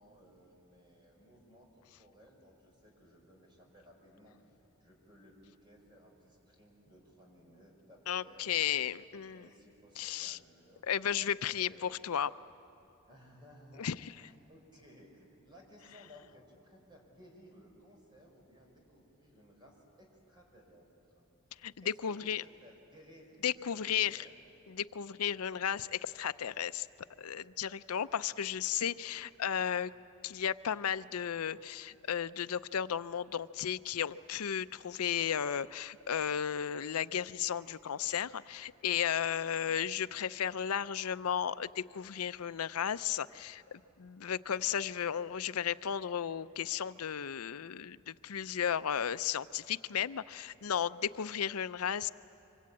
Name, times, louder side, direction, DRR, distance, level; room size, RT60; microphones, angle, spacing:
voice 1, 0.0-4.4 4.8-8.6 9.1-10.9 11.1-12.0 13.1-20.9 21.2-21.3 21.5-24.4, equal, 20° right, 0 dB, 5.2 m, -59 dB
voice 2, 8.1-9.5 10.0-10.4 10.8-12.3 13.8-14.1 21.6-22.4 23.4-24.3 24.7-26.9 27.2-29.9 30.2-52.1, left 8 dB, 85° left, 15 dB, 0.5 m, -34 dB
25.5 x 24.5 x 8.6 m, 3.0 s
head